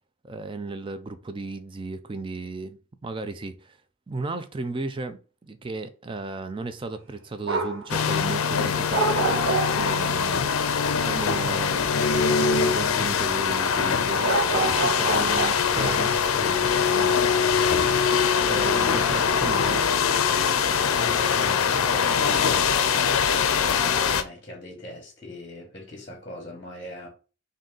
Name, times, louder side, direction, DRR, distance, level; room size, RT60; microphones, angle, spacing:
voice 1, 0.2-3.8 4.1-9.5 9.7-16.1 16.4-17.5 18.4-19.9, right 3 dB, 25° right, 0.4 m, -35 dB
sound 1, 7.4-7.9 8.9-10.1 14.2-16.1, right 3 dB, 70° right, 0.9 m, -27 dB
sound 2, 7.9-24.2, left 6 dB, 85° left, 0.5 m, -23 dB
voice 2, 20.9-27.1, left 1 dB, 25° left, 1.1 m, -40 dB
3.9 x 2.7 x 3.7 m
head